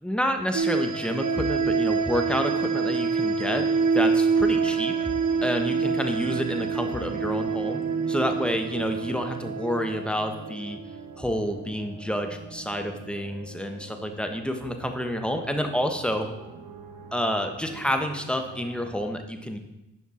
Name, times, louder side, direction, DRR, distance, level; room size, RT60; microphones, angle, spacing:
voice 1, 0.0-3.7 3.9-5.1 5.4-10.8 11.2-16.3 17.1-19.6, equal, 5° left, 5 dB, 1.4 m, -29 dB
sound 1, 0.5-11.0, right 5 dB, 60° right, 1.1 m, -26 dB
sound 2, 2.3-18.9, right 5 dB, 85° right, 1.0 m, -44 dB
11.0 x 5.8 x 4.5 m, 0.94 s
supercardioid pair, 45°, 33 cm